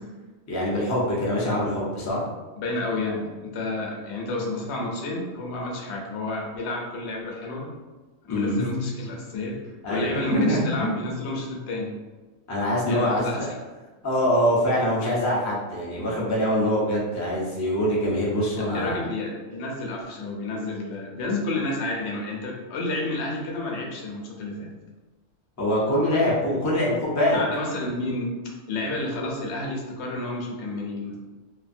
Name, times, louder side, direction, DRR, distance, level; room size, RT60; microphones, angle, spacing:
voice 1, 0.5-2.2 8.3-8.8 9.8-11.0 12.5-13.5 14.0-19.0 25.6-27.4, equal, 25° left, -5 dB, 0.3 m, -24 dB
voice 2, 2.6-7.7 8.2-9.6 9.9-12.0 12.9-13.5 18.7-24.7 27.3-28.3 28.7-31.2, left 2 dB, 65° left, -1 dB, 0.9 m, -30 dB
2.8 x 2.4 x 2.6 m, 1.2 s
omnidirectional pair, 1.4 m